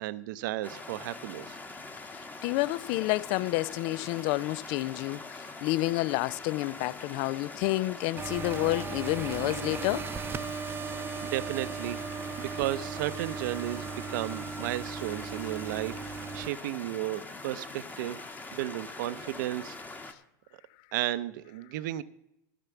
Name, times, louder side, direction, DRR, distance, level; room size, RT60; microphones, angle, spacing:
voice 1, 0.0-1.6 10.9-12.0 12.4-16.0 16.3-18.2 18.5-19.8 20.9-22.0, right 15 dB, 75° right, 0.6 m, -34 dB
sound 1, 0.6-20.1, left 3 dB, 15° left, 1.3 m, -43 dB
sound 2, 0.7-2.8 3.1-6.3 8.9-18.3, right 4 dB, 5° right, 1.1 m, -57 dB
voice 2, 2.4-10.1, left 19 dB, 55° left, 0.4 m, -29 dB
sound 3, 8.2-16.5, right 6 dB, 20° right, 0.6 m, -37 dB
14.0 x 5.9 x 6.9 m
hypercardioid pair, 110°, 10 cm